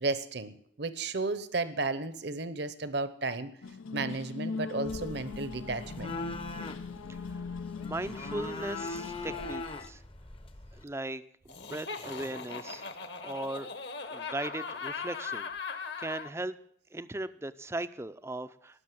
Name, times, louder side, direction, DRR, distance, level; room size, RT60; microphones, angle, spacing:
voice 1, 0.0-3.5 3.9-6.2, right 3 dB, 55° right, 13 dB, 0.9 m, -33 dB
sound 1, 3.6-9.9, left 4 dB, 85° left, 0.6 m, -40 dB
sound 2, 4.9-10.8, left 2 dB, 25° left, 0.8 m, -41 dB
voice 2, 7.8-10.0 10.7-12.9 13.2-13.7 14.1-16.6 16.9-18.8, right 2 dB, 15° right, 13 dB, 0.5 m, -38 dB
Laughter, 11.5-16.3, left 5 dB, 55° left, 1.3 m, -39 dB
19.0 x 6.4 x 7.5 m, 0.68 s
head